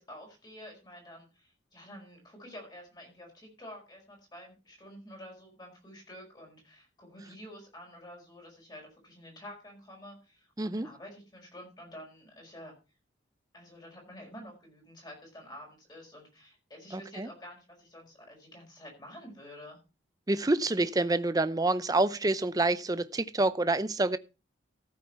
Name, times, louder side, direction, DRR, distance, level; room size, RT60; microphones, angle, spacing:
voice 1, 0.0-12.7 13.5-19.8, equal, 25° left, 0 dB, 5.1 m, -49 dB
voice 2, 16.9-17.3 20.3-24.2, right 2 dB, 20° right, 13 dB, 0.6 m, -27 dB
15.0 x 8.6 x 4.3 m, 0.31 s
head